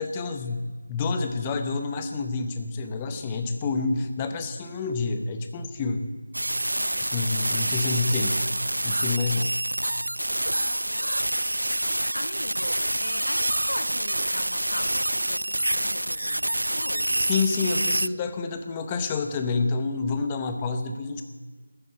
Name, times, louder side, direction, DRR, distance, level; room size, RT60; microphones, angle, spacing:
voice 1, 0.0-6.1 7.1-8.4 8.8-9.5 17.2-21.2, left 4 dB, 15° left, 7 dB, 0.8 m, -28 dB
voice 2, 3.1-3.7 6.8-7.2 7.6-8.3 10.4-11.1 11.7-17.3, left 1 dB, 80° left, 11 dB, 1.1 m, -40 dB
sound 1, 6.3-18.1, right 1 dB, 90° right, 0.3 m, -27 dB
14.0 x 9.4 x 8.4 m, 1.4 s
figure-of-eight pair, 170°, 0 cm